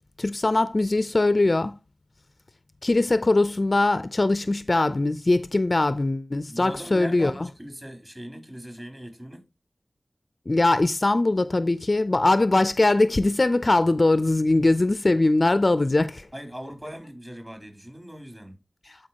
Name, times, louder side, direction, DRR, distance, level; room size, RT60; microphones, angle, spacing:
voice 1, 0.2-1.8 2.8-7.3 10.5-16.3, left 2 dB, 50° left, 0.5 m, -21 dB
voice 2, 6.5-9.5 16.3-18.6, equal, 20° right, 3.4 m, -39 dB
12.0 x 4.8 x 2.9 m
cardioid pair, 40°, 0 cm